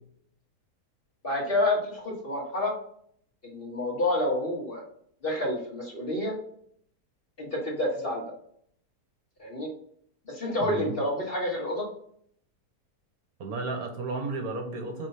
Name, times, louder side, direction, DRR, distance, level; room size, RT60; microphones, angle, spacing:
voice 1, 1.2-2.7 3.4-4.8 5.2-6.3 7.4-8.2 9.4-9.7 10.3-11.8, left 1 dB, 35° left, -2 dB, 1.5 m, -28 dB
voice 2, 10.6-10.9 13.4-15.1, right 3 dB, 65° right, 3 dB, 1.3 m, -33 dB
4.9 x 4.0 x 5.5 m, 0.65 s
omnidirectional pair, 1.7 m